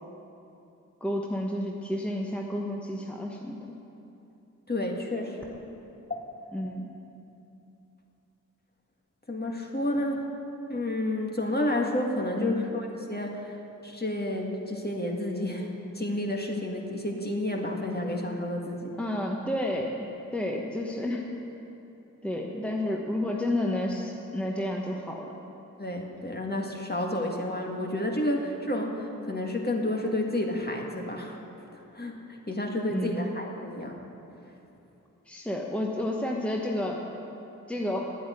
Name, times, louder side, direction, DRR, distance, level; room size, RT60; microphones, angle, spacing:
voice 1, 1.0-3.8 6.5-6.9 12.4-12.7 19.0-21.2 22.2-25.3 32.9-33.3 35.3-37.0 37.7-38.1, left 1 dB, 5° left, -1 dB, 1.2 m, -31 dB
voice 2, 4.7-5.6 6.1-6.2 9.3-10.2 10.7-13.6 13.8-19.0 25.8-31.4 31.7-32.1 32.5-34.0, left 1 dB, 30° left, 1 dB, 1.9 m, -30 dB
9.4 x 8.5 x 9.8 m, 2.9 s
cardioid pair, 45°, 33 cm